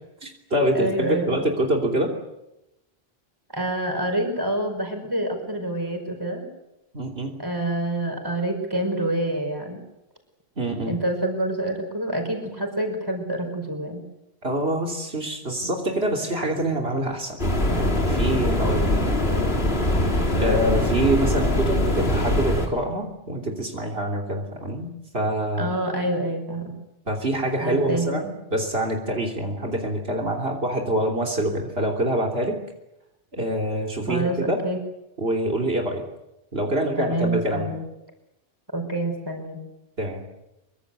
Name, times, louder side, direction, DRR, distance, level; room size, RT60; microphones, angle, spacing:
voice 1, 0.2-2.1 6.9-7.4 10.6-11.0 14.4-17.4 17.7-19.0 19.9-20.0 20.4-25.7 27.1-32.6 33.3-34.6 35.2-36.0 36.5-37.7 40.0-40.3, right 1 dB, 75° right, 1 dB, 3.4 m, -25 dB
voice 2, 0.7-1.6 3.5-6.4 7.4-9.8 10.9-14.0 25.6-26.7 27.6-28.2 34.1-34.8 37.0-37.8 38.7-39.6, right 1 dB, 20° right, 4 dB, 5.3 m, -27 dB
sound 1, 17.4-22.7, left 1 dB, 80° left, 3.6 m, -22 dB
24.0 x 24.0 x 8.0 m, 0.91 s
omnidirectional pair, 1.0 m